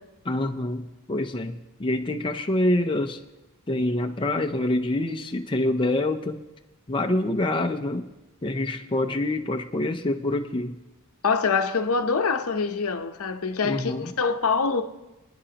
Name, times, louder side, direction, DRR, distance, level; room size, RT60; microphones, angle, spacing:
voice 1, 0.3-3.2 3.7-6.4 6.9-8.1 8.4-10.8 13.6-14.1, left 1 dB, 20° left, 0.5 m, -26 dB
voice 2, 11.2-14.8, left 5 dB, 70° left, 0.7 m, -25 dB
25.0 x 10.0 x 2.9 m
head